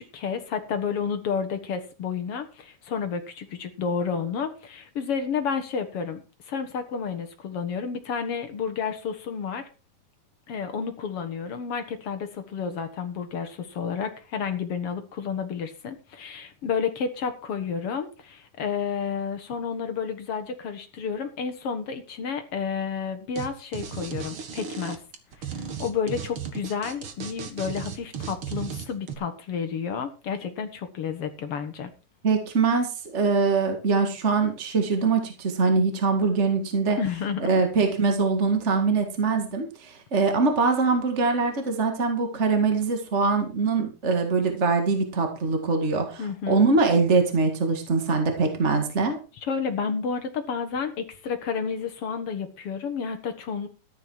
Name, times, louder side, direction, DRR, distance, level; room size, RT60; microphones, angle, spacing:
voice 1, 0.0-9.7 10.5-25.0 25.4-31.9 37.0-37.5 46.2-46.6 49.4-53.7, left 6 dB, 60° left, 8 dB, 1.6 m, -31 dB
sound 1, 23.3-23.5 23.7-29.1, right 7 dB, 45° right, 1.9 m, -35 dB
voice 2, 32.2-37.0 37.4-49.2, right 4 dB, 30° right, 5 dB, 1.2 m, -23 dB
14.0 x 10.5 x 4.6 m, 0.32 s
omnidirectional pair, 4.6 m